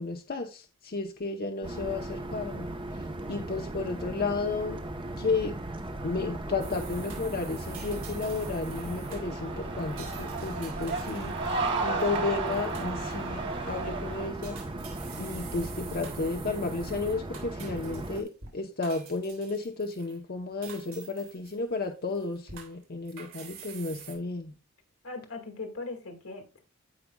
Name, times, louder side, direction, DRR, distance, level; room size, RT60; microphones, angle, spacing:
voice 1, 0.0-2.7 3.3-4.8 5.2-5.6 6.0-11.4 11.8-14.6 15.2-24.5, left 3 dB, 45° left, 0.8 m, -33 dB
sound 1, 1.6-18.2, right 1 dB, 25° right, 0.9 m, -37 dB
sound 2, 6.6-14.3, right 3 dB, 60° right, 2.2 m, -35 dB
sound 3, 6.6-12.1 12.5-13.3 13.7-14.0 14.4-18.5 18.8-20.2 20.6-21.9 22.1-24.2, right 6 dB, 80° right, 3.4 m, -48 dB
voice 2, 25.0-26.6, left 3 dB, 80° left, 2.0 m, -39 dB
15.0 x 5.1 x 2.3 m
head